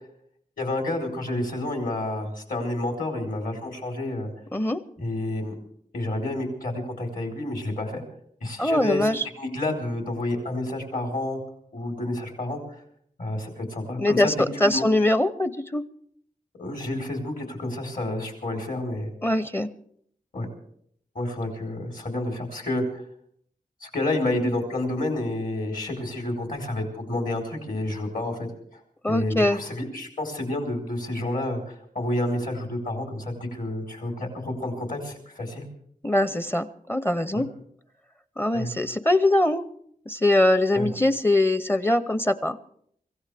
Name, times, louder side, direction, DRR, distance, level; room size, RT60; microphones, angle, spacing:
voice 1, 0.6-4.3 5.0-5.5 5.9-8.0 8.4-11.4 11.7-12.8 13.2-14.3 14.6-14.8 16.6-19.1 20.3-20.5 21.1-23.0 23.8-28.5 29.1-35.7 37.3-37.4 38.5-38.7 40.7-40.9, left 1 dB, 65° left, 2 dB, 4.1 m, -29 dB
voice 2, 8.6-9.2 14.0-14.3 14.6-15.8 19.2-19.7 29.0-29.6 36.0-37.5 38.4-39.6 40.1-42.6, left 1 dB, 15° left, 13 dB, 0.6 m, -22 dB
25.0 x 15.5 x 3.4 m, 0.66 s
wide cardioid pair, 100°, 15 cm